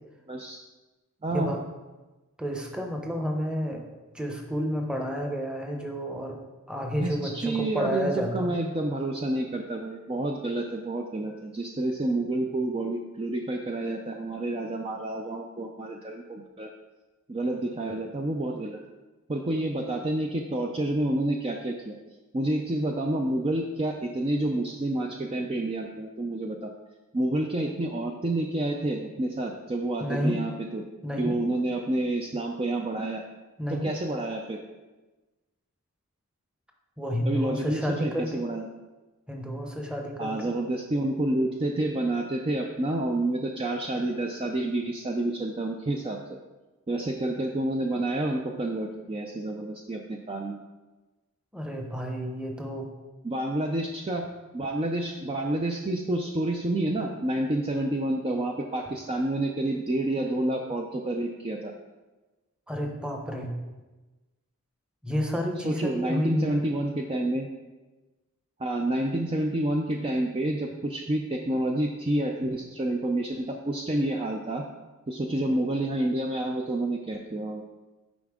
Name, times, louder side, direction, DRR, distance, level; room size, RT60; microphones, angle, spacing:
voice 1, 0.3-0.6 1.2-1.5 7.0-16.7 17.3-18.8 19.3-21.9 22.3-26.7 27.1-30.9 31.2-33.2 33.7-34.6 37.2-38.7 40.2-46.2 46.9-50.6 53.2-54.2 54.5-61.7 65.6-67.5 68.6-74.7 75.1-77.6, right 1 dB, 25° right, 2 dB, 0.4 m, -29 dB
voice 2, 2.4-3.8 4.1-6.4 6.7-8.6 30.0-30.4 31.0-31.4 33.6-33.9 37.0-38.4 39.3-40.5 51.5-52.9 62.7-63.5 65.0-66.6, equal, 5° right, 2 dB, 0.9 m, -30 dB
9.8 x 4.9 x 3.6 m, 1.2 s
head